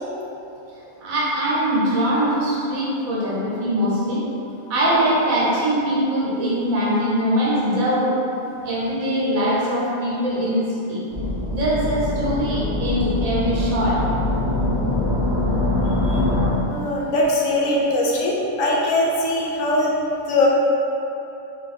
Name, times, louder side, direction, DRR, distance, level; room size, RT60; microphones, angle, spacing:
voice 1, 1.0-4.2 4.7-8.1 8.6-11.0 11.5-14.0, equal, 80° right, -6 dB, 1.3 m, -22 dB
sound 1, 11.1-16.5, left 2 dB, 30° right, 0.3 m, -23 dB
voice 2, 16.7-19.9 20.3-20.5, left 1 dB, 75° left, -4 dB, 1.0 m, -21 dB
3.4 x 2.4 x 4.0 m, 2.9 s
omnidirectional pair, 1.4 m